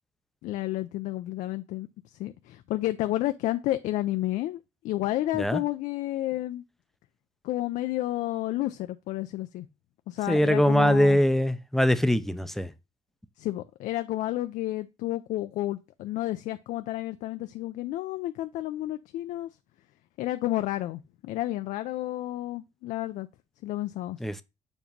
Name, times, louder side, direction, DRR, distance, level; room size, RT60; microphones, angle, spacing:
voice 1, 0.4-4.6 4.8-6.6 7.4-9.7 10.1-11.2 13.4-19.5 20.2-23.3 23.6-24.2, left 15 dB, 85° left, 0.4 m, -31 dB
voice 2, 10.3-12.7 24.2-24.4, equal, ahead, 0.5 m, -22 dB
7.2 x 2.9 x 5.2 m
cardioid pair, 130°, 13 cm